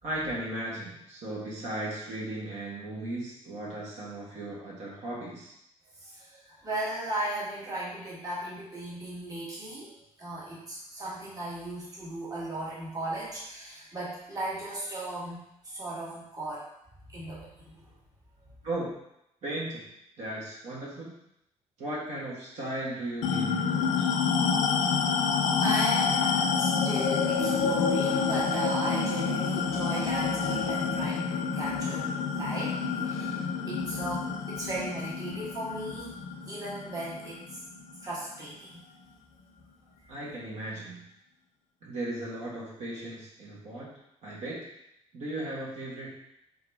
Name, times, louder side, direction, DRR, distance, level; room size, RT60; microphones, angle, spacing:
voice 1, 0.0-5.5 18.6-18.9 19.4-19.8 20.2-21.1 21.8-24.1 40.1-41.0 41.8-43.9 44.2-44.6 45.1-46.1, right 1 dB, 70° right, -6 dB, 1.4 m, -36 dB
voice 2, 6.0-16.6 17.1-17.9 18.4-18.5 25.6-32.7 33.0-36.2 36.5-37.6 38.0-38.9, right 1 dB, 30° right, -6 dB, 1.5 m, -37 dB
sound 1, 23.2-38.0, left 5 dB, 90° left, 0.4 m, -28 dB
3.9 x 3.8 x 3.5 m, 0.80 s
cardioid pair, 120°, 12 cm